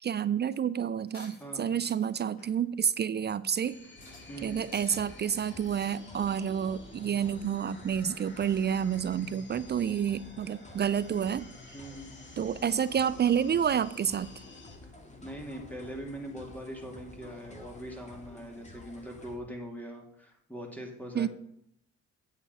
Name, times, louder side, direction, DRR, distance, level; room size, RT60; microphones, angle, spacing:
voice 1, 0.0-3.8 4.4-11.5 12.4-14.3 21.1-21.3, right 8 dB, 35° right, 16 dB, 0.4 m, -29 dB
sound 1, 1.1-2.1 2.4-2.6 3.0-3.1 3.5-3.6 3.8-4.2 4.6-5.0 5.3-5.9, left 2 dB, 60° left, 4.4 m, -52 dB
voice 2, 1.4-1.7 4.3-4.6 11.7-12.2 15.2-21.3, equal, 5° left, 1 dB, 2.4 m, -42 dB
sound 2, 3.6-14.8, left 3 dB, 40° left, 2.0 m, -53 dB
sound 3, 4.0-19.4, left 2 dB, 25° left, 1.9 m, -51 dB
8.3 x 7.3 x 5.4 m, 0.72 s
cardioid pair, 90°, 30 cm